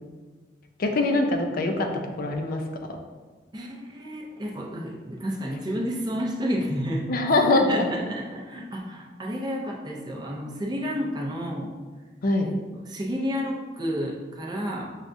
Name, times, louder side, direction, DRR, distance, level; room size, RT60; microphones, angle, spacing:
voice 1, 0.8-1.9 2.2-2.6 7.1-7.9 12.2-12.5, left 2 dB, 50° left, 3 dB, 0.4 m, -22 dB
voice 2, 3.5-7.1 7.7-11.7 12.4-15.0, equal, 25° right, -1 dB, 0.5 m, -31 dB
6.0 x 2.3 x 2.6 m, 1.4 s
head